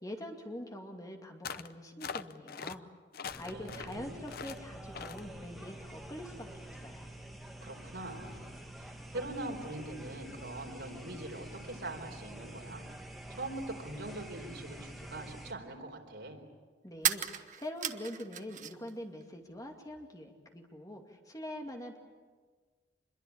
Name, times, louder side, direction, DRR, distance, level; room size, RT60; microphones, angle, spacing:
voice 1, 0.0-2.8 3.4-7.0 16.8-22.0, left 1 dB, 20° left, 3 dB, 2.4 m, -44 dB
sound 1, 1.4-1.7 2.0-2.8 3.1-4.0 4.3-4.6 4.9-5.2, left 6 dB, 55° left, 0.7 m, -41 dB
sound 2, 3.3-15.5, right 1 dB, ahead, 2.0 m, -47 dB
voice 2, 3.5-4.1 7.6-12.8 13.3-16.4, right 2 dB, 75° right, 3 dB, 4.2 m, -43 dB
sound 3, 16.9-18.9 19.2-20.1, right 10 dB, 45° right, 1.1 m, -36 dB
26.0 x 22.0 x 8.7 m, 1.5 s
head